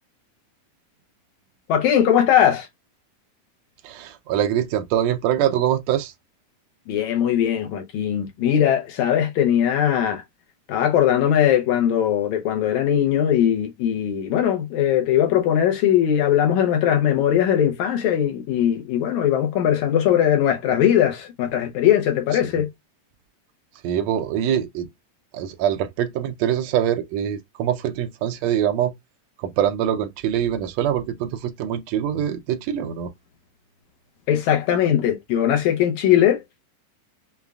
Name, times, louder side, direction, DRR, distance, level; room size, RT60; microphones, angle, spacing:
voice 1, 1.7-2.7 6.9-10.2 10.7-22.7 34.3-36.4, left 10 dB, 75° left, 1.9 m, -20 dB
voice 2, 3.8-6.1 22.4-22.6 23.8-24.9 25.3-28.9 29.4-33.1, right 10 dB, 80° right, 1.5 m, -24 dB
6.7 x 2.3 x 2.3 m
omnidirectional pair, 3.8 m